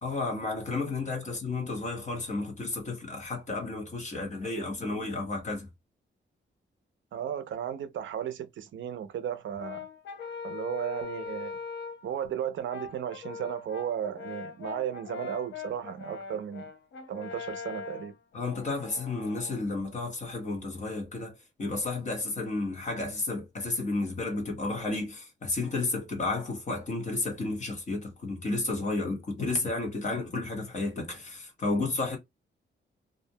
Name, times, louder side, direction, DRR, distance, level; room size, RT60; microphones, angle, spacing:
voice 1, 0.0-5.7 18.3-32.2, left 3 dB, 35° left, 0.9 m, -32 dB
voice 2, 7.1-9.9 10.4-11.6 12.0-16.6 17.1-18.1, right 9 dB, 75° right, 0.4 m, -35 dB
Brass instrument, 9.6-12.1 12.7-19.6, left 5 dB, 70° left, 0.5 m, -41 dB
2.4 x 2.1 x 2.7 m
wide cardioid pair, 170°, 20 cm